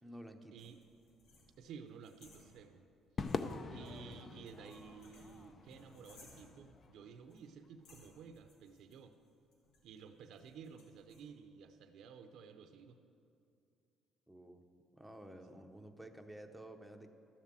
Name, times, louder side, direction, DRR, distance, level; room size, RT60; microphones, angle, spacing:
voice 1, 0.0-0.5 14.3-14.6 15.0-17.1, right 1 dB, 5° right, 5 dB, 0.8 m, -52 dB
sound 1, 0.6-2.9 3.2-6.7 7.3-7.5 7.8-11.2, left 2 dB, 75° left, 2.6 m, -64 dB
voice 2, 1.6-2.8 3.7-9.1 9.8-13.0, right 6 dB, 65° right, 8 dB, 0.6 m, -53 dB
Crowd / Fireworks, 3.2-7.7, left 4 dB, 35° left, 0.5 m, -44 dB
13.0 x 7.3 x 7.4 m, 2.5 s
cardioid pair, 125°, 0 cm